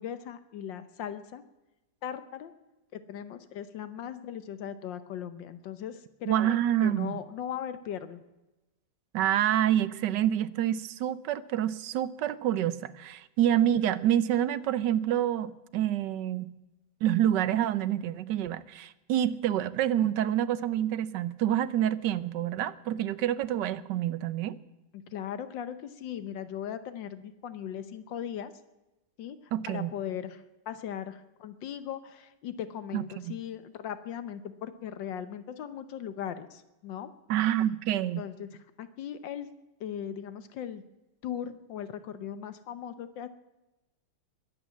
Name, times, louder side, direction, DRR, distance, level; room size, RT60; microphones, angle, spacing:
voice 1, 0.0-1.4 2.0-2.5 2.9-8.2 24.9-28.5 29.2-29.4 29.7-37.1 37.9-39.5 39.8-40.8 41.2-43.3, left 9 dB, 80° left, 12 dB, 1.5 m, -38 dB
voice 2, 6.3-7.2 9.1-16.5 17.0-24.6 29.5-29.9 32.9-33.4 37.3-38.2, right 11 dB, 70° right, 15 dB, 1.3 m, -27 dB
22.0 x 8.8 x 7.2 m, 1.0 s
omnidirectional pair, 2.0 m